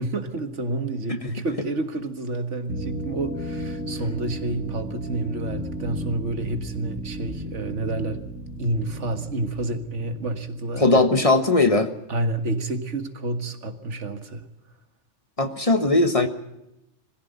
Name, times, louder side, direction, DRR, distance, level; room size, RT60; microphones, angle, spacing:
voice 1, 0.0-8.2 8.6-11.0 12.1-14.4, right 2 dB, 80° right, 7 dB, 2.0 m, -29 dB
sound 1, 2.7-11.4, right 1 dB, 10° right, 4.4 m, -34 dB
voice 2, 10.8-11.9 15.4-16.3, left 2 dB, 30° left, 9 dB, 1.3 m, -19 dB
22.0 x 15.5 x 9.3 m, 0.87 s
omnidirectional pair, 1.2 m